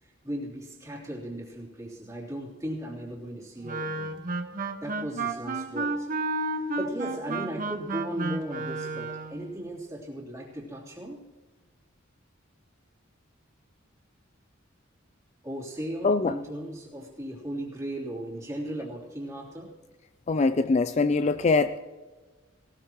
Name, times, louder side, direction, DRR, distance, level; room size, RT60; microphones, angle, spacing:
voice 1, 0.0-4.2 4.8-6.1 6.5-11.2 15.4-19.7, right 1 dB, 15° right, -3 dB, 3.2 m, -37 dB
Wind instrument woodwind instrument, 3.6-9.4, right 3 dB, 45° right, 1.3 m, -32 dB
voice 2, 20.3-21.8, left 3 dB, 35° left, 12 dB, 0.4 m, -23 dB
19.0 x 18.5 x 3.0 m, 1.3 s
head